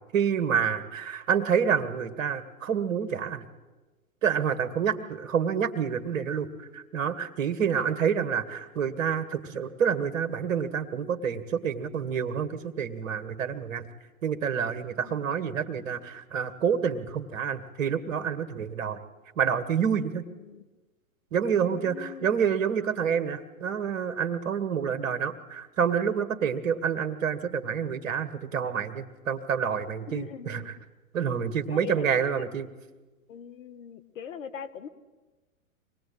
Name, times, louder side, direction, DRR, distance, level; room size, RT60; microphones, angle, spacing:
voice 1, 0.1-3.4 4.2-13.9 14.2-19.0 19.4-20.2 21.3-30.6 31.1-32.7, right 7 dB, 60° right, 10 dB, 2.2 m, -28 dB
voice 2, 7.6-8.0 15.0-15.5 20.3-20.7 21.6-22.6 30.1-30.8 31.7-32.5 33.3-34.9, left 7 dB, 60° left, 11 dB, 2.1 m, -42 dB
25.0 x 19.0 x 8.8 m, 1.2 s
hypercardioid pair, 110°, 43 cm